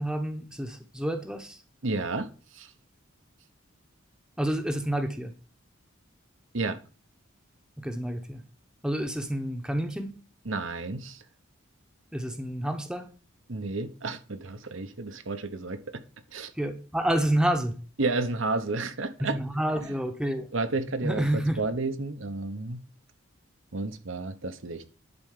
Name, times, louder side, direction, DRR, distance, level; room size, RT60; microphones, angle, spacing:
voice 1, 0.0-1.6 4.4-5.3 7.8-8.4 8.8-10.1 12.1-13.1 16.6-17.8 19.2-20.5 21.0-21.6, right 1 dB, 5° right, 1.0 m, -29 dB
voice 2, 1.8-2.7 6.5-6.8 10.5-11.2 13.5-16.0 16.3-16.5 18.0-19.4 20.5-22.8 23.7-24.8, right 3 dB, 65° right, 1.0 m, -31 dB
11.0 x 4.5 x 6.6 m
head